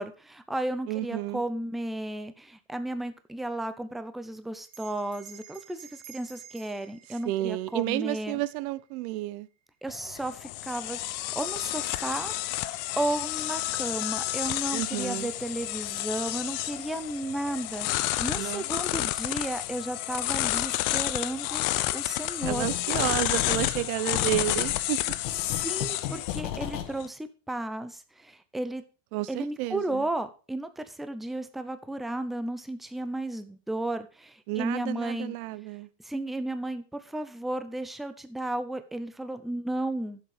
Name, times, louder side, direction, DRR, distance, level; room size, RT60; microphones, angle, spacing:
voice 1, 0.0-8.4 9.8-17.9 18.2-21.6 21.9-22.7 25.6-28.8 29.3-35.3 36.0-40.2, right 1 dB, ahead, 0.5 m, -34 dB
voice 2, 0.9-1.4 7.2-9.5 14.7-15.3 18.3-18.6 19.0-19.1 22.4-25.0 29.1-30.1 34.5-35.9, right 17 dB, 60° right, 0.9 m, -31 dB
Bell, 4.7-9.5, right 9 dB, 45° right, 2.2 m, -52 dB
sound 1, 9.9-27.1, left 16 dB, 40° left, 0.7 m, -31 dB
sound 2, 22.4-23.1 23.4-26.9, left 11 dB, 80° left, 1.8 m, -35 dB
11.0 x 7.5 x 4.9 m
supercardioid pair, 130°, 49 cm